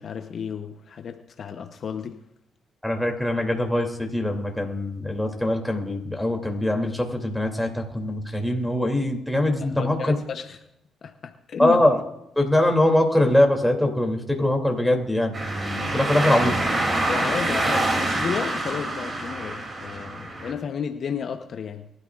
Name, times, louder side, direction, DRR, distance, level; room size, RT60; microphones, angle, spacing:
voice 1, 0.0-2.2 9.6-10.6 11.0-11.8 17.1-21.9, left 7 dB, 55° left, 0.9 m, -32 dB
voice 2, 2.8-10.2 11.6-12.0 12.4-15.3 15.9-16.6, left 1 dB, 5° left, 2.8 m, -22 dB
sound 1, 15.3-20.5, right 2 dB, 30° right, 2.8 m, -26 dB
23.0 x 13.0 x 2.5 m
cardioid pair, 90°, 0 cm